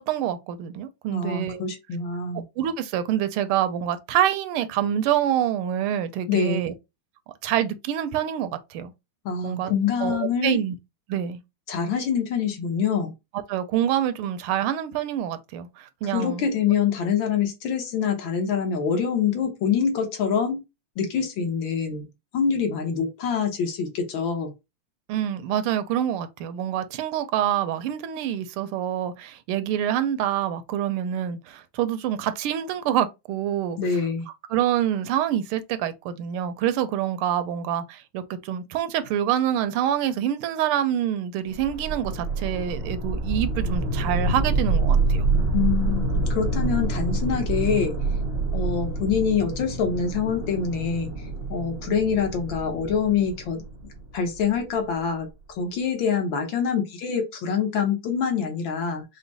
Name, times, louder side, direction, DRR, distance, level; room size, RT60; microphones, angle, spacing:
voice 1, 0.0-1.6 2.3-6.7 7.4-8.9 9.4-9.7 10.0-10.7 11.1-11.4 13.5-16.5 25.1-34.0 34.5-45.3, right 10 dB, 85° right, 1.5 m, -26 dB
voice 2, 1.1-2.4 6.3-6.7 9.2-10.6 11.7-13.1 16.0-20.6 21.0-22.0 22.3-24.5 33.8-34.2 45.5-48.0 48.5-51.1 51.5-53.6 54.1-55.3 55.6-59.0, left 6 dB, 70° left, 1.6 m, -25 dB
sound 1, 41.5-54.6, right 3 dB, 70° right, 0.5 m, -27 dB
4.9 x 2.1 x 3.9 m
omnidirectional pair, 2.3 m